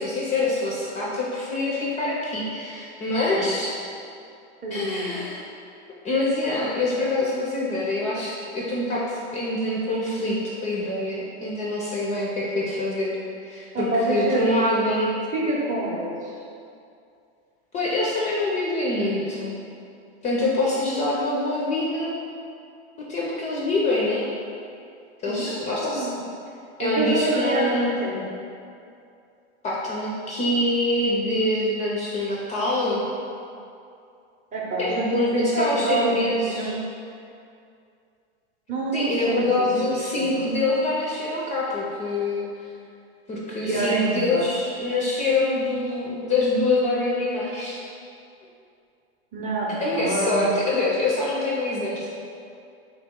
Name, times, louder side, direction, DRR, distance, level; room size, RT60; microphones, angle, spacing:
voice 1, 0.0-3.8 4.7-5.4 6.0-13.2 13.4-15.1 17.7-19.5 20.2-22.2 23.1-24.3 25.2-26.1 26.8-28.0 29.6-33.0 34.8-36.7 38.9-42.4 43.3-47.8 49.8-52.1, left 2 dB, 20° left, -5 dB, 0.4 m, -25 dB
voice 2, 4.6-5.2 13.7-14.5 15.3-16.3 25.2-26.2 26.8-28.2 34.5-36.8 38.7-39.7 40.1-40.4 43.6-44.5 49.3-50.4, right 2 dB, 25° right, -4 dB, 0.6 m, -27 dB
3.7 x 2.9 x 3.6 m, 2.5 s
supercardioid pair, 130°, 33 cm